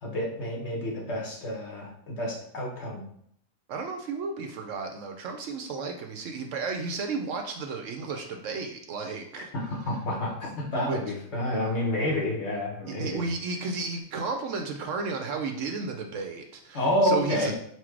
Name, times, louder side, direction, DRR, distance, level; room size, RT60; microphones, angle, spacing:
voice 1, 0.0-3.0 9.5-13.2 16.7-17.5, left 1 dB, 55° left, -3 dB, 1.4 m, -29 dB
voice 2, 3.7-9.5 10.9-11.0 12.9-17.5, right 4 dB, 70° right, 4 dB, 0.9 m, -33 dB
4.3 x 2.2 x 4.5 m, 0.68 s
omnidirectional pair, 1.5 m